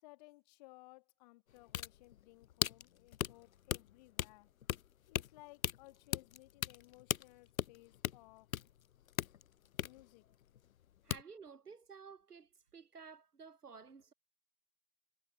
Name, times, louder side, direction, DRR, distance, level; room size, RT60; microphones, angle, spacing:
voice 1, 0.0-4.5 5.1-8.7 9.2-9.3 9.7-10.3, left 23 dB, 25° left, 1.6 m, -60 dB
sound 1, 1.5-10.8 11.1-11.2, left 10 dB, 65° left, 0.5 m, -39 dB
voice 2, 11.0-14.1, right 5 dB, 85° right, 0.9 m, -54 dB
figure-of-eight pair, 120°, 45 cm